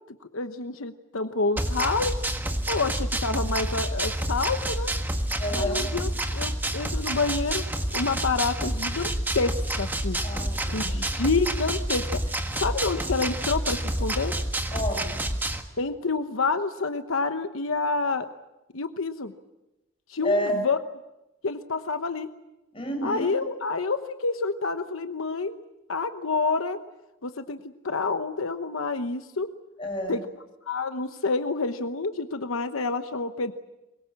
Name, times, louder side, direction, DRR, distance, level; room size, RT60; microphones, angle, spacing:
voice 1, 0.3-2.1 2.7-4.9 5.5-7.6 7.9-10.2 10.7-12.2 12.5-14.3 15.8-18.3 18.7-19.3 20.1-20.8 21.4-22.3 23.0-25.6 25.9-26.8 27.2-29.5 30.1-30.2 30.7-33.5, left 3 dB, 85° left, 9 dB, 1.0 m, -28 dB
sound 1, 1.6-15.6, right 1 dB, 10° right, 1.6 m, -28 dB
voice 2, 5.4-5.9 10.2-11.1 14.7-15.2 20.2-20.6 22.7-23.3 29.8-30.2, equal, 25° left, 2 dB, 7.0 m, -29 dB
24.5 x 22.0 x 8.6 m, 0.99 s
head